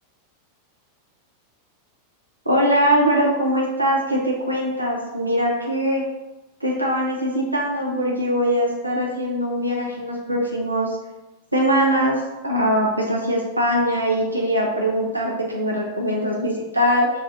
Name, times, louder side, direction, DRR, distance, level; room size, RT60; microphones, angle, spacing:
voice 1, 2.5-6.0 6.6-11.0 11.5-17.1, equal, 85° right, -2 dB, 0.5 m, -22 dB
2.5 x 2.4 x 4.0 m, 1.0 s
figure-of-eight pair, 90°, 0 cm